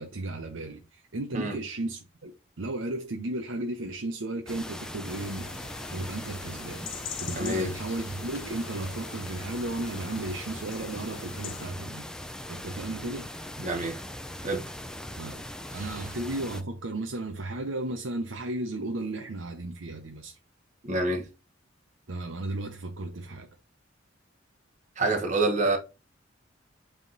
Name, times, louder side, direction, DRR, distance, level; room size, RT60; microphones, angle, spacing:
voice 1, 0.0-5.5 5.9-12.1 12.5-13.3 15.2-15.4 15.7-20.4 22.1-23.5, right 2 dB, 80° right, 0.8 m, -34 dB
sound 1, 4.5-16.6, left 1 dB, 5° left, 0.5 m, -40 dB
sound 2, 5.0-11.7, left 6 dB, 90° left, 1.3 m, -43 dB
voice 2, 7.3-7.7 13.6-14.0 14.4-14.6 15.7-16.0 20.8-21.3 25.0-25.8, right 2 dB, 40° right, 1.2 m, -27 dB
7.5 x 3.7 x 4.0 m
head